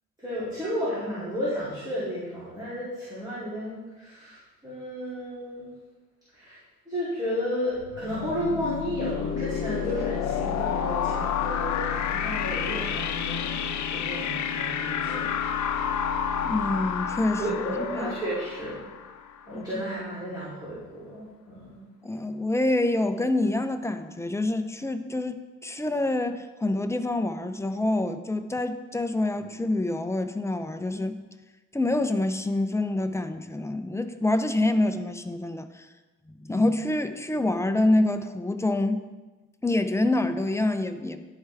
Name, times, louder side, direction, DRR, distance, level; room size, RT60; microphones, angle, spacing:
voice 1, 0.2-5.7 6.3-6.6 6.9-15.2 17.4-19.1 19.5-21.8, equal, 15° right, -10 dB, 2.7 m, -33 dB
sound 1, 7.8-19.5, left 8 dB, 70° left, 0.6 m, -30 dB
voice 2, 16.4-17.4 17.9-18.1 19.5-19.6 22.0-25.4 25.6-31.2 31.7-35.9 36.4-39.0 39.6-41.2, left 2 dB, 10° left, 8 dB, 0.5 m, -26 dB
11.0 x 4.6 x 3.4 m, 1.2 s
cardioid pair, 90°, 30 cm